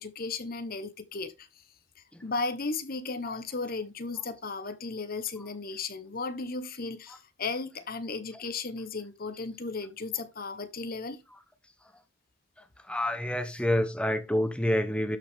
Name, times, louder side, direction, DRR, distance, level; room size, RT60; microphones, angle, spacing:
voice 1, 0.0-1.5 2.2-11.2, left 4 dB, 50° left, 1.2 m, -35 dB
voice 2, 12.9-15.2, left 1 dB, 5° left, 1.2 m, -27 dB
12.5 x 5.6 x 3.6 m
head